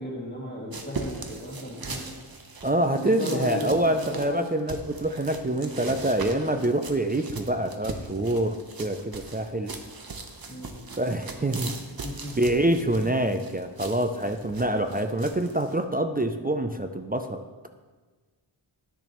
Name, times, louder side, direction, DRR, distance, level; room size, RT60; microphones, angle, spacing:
voice 1, 0.0-2.0 2.9-4.4 10.5-10.7 12.0-12.3, left 1 dB, 20° left, -4 dB, 2.2 m, -34 dB
sound 1, 0.7-15.8, right 4 dB, 45° right, 0.8 m, -40 dB
voice 2, 2.6-9.8 11.0-11.8 12.4-17.4, right 1 dB, 20° right, 6 dB, 0.4 m, -26 dB
10.0 x 6.7 x 3.0 m, 1.3 s
wide cardioid pair, 55°, 49 cm